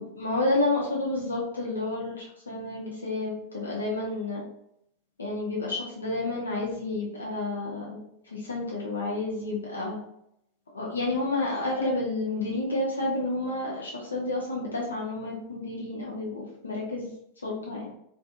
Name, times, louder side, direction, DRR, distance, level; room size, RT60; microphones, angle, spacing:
voice 1, 0.0-4.4 5.2-10.0 10.7-17.1 17.4-17.9, left 2 dB, 75° left, -3 dB, 0.5 m, -30 dB
2.5 x 2.3 x 2.4 m, 0.76 s
figure-of-eight pair, 90°, 0 cm